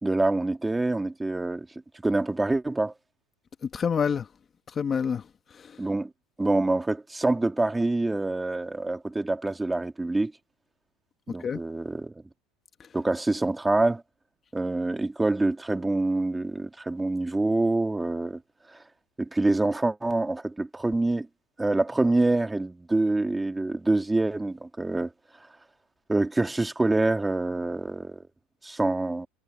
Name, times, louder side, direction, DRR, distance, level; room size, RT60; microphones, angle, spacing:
voice 1, 0.0-1.7 2.0-2.9 5.8-6.1 6.4-10.3 11.3-12.1 12.9-14.0 14.5-18.4 18.7-18.8 19.2-21.3 21.6-25.1 26.1-28.2 28.6-29.3, right 2 dB, 10° right, 2.2 m, -26 dB
voice 2, 3.6-4.3 4.7-5.8 11.4-11.6 12.8-12.9, left 6 dB, 30° left, 1.6 m, -28 dB
supercardioid pair, 115°, 0 cm